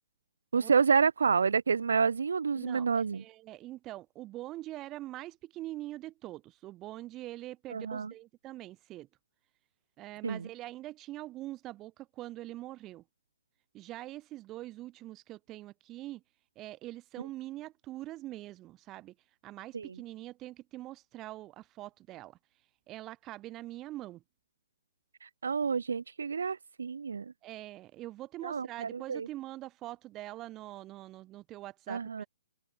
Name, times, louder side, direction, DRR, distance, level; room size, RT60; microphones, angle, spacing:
voice 1, 0.5-3.2 7.7-8.1 10.2-10.5 19.7-19.9 25.2-27.2 28.4-29.3 31.9-32.2, right 5 dB, 85° right, 0.9 m, -29 dB
voice 2, 2.6-2.9 3.1-9.1 10.0-13.0 13.7-16.2 16.6-19.1 19.4-22.4 22.9-24.2 27.4-32.0, right 16 dB, 25° right, 5.6 m, -43 dB
open air
hypercardioid pair, 140°, 0 cm